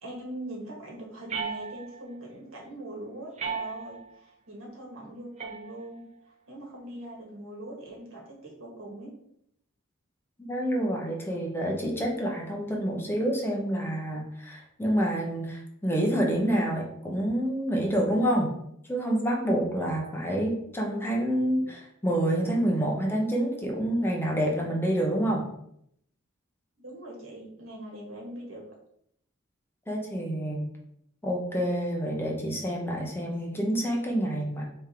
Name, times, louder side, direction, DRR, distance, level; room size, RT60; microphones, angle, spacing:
voice 1, 0.0-6.0 6.5-9.1 26.8-28.6, right 1 dB, 80° right, -2 dB, 1.6 m, -42 dB
sound 1, 1.3-2.2 3.4-4.2 5.4-6.2, right 5 dB, 35° right, 0.5 m, -36 dB
voice 2, 10.5-18.5 18.9-25.4 29.9-30.7 31.2-34.6, right 1 dB, 10° left, -1 dB, 0.8 m, -28 dB
3.7 x 3.3 x 4.3 m, 0.73 s
head